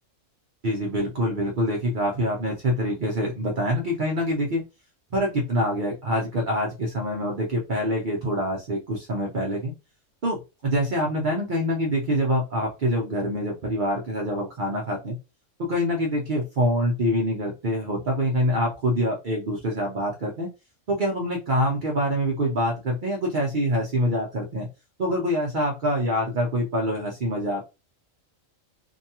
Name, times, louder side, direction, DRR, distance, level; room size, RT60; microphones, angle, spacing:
voice 1, 0.6-4.6 5.1-9.7 10.2-15.2 15.7-20.5 20.9-24.7 25.0-27.6, equal, 50° right, -1 dB, 0.6 m, -25 dB
2.6 x 2.2 x 2.8 m, 0.27 s
omnidirectional pair, 1.4 m